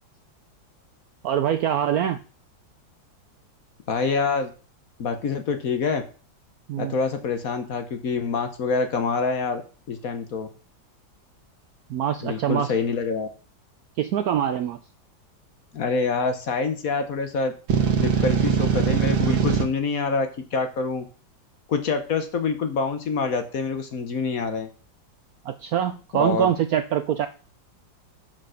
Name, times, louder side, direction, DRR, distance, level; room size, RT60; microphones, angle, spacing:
voice 1, 1.2-2.2 6.7-6.9 11.9-12.7 14.0-14.8 25.4-27.3, right 10 dB, 70° right, 10 dB, 0.9 m, -24 dB
voice 2, 3.9-4.5 5.0-6.0 6.8-9.6 9.9-10.5 12.2-13.3 15.7-17.5 18.0-21.0 21.7-24.7 26.1-26.5, left 4 dB, 55° left, 8 dB, 1.3 m, -26 dB
sound 1, 17.7-19.6, right 6 dB, 90° right, 2.0 m, -21 dB
7.6 x 5.2 x 6.3 m, 0.37 s
omnidirectional pair, 2.1 m